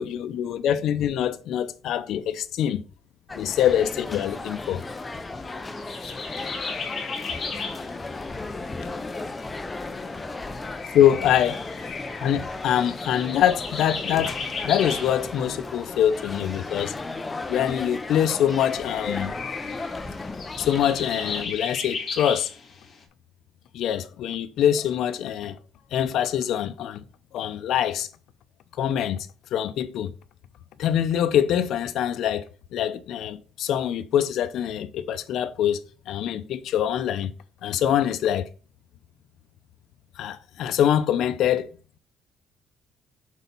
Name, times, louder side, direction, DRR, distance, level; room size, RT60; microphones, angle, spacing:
voice 1, 0.0-2.8 3.3-4.8 10.9-11.6 12.2-14.3 14.6-16.9 17.5-19.4 20.6-22.5 23.7-25.6 25.9-27.0 27.3-28.1 28.8-30.1 30.8-37.3 37.6-38.5 40.2-41.7, left 10 dB, 70° left, 0.7 m, -24 dB
sound 1, 3.3-21.5, left 3 dB, 15° left, 0.5 m, -35 dB
sound 2, 3.7-23.0, left 5 dB, 35° left, 1.9 m, -36 dB
6.4 x 4.1 x 5.4 m
cardioid pair, 150°, 0 cm